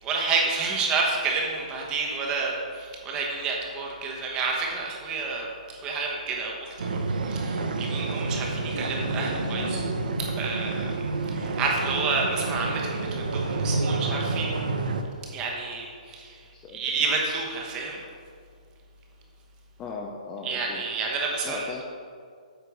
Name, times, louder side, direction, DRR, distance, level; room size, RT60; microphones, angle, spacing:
voice 1, 0.0-6.9 7.2-9.8 10.2-10.8 11.3-14.6 15.3-16.4 16.7-18.0 20.4-21.7, right 4 dB, 20° right, -1 dB, 1.1 m, -29 dB
sound 1, 6.8-15.0, right 3 dB, 85° right, 0.8 m, -29 dB
voice 2, 16.5-17.1 19.8-20.8 21.4-21.9, left 4 dB, 15° left, 0 dB, 0.5 m, -38 dB
8.2 x 4.3 x 6.2 m, 2.2 s
hypercardioid pair, 160°, 4 cm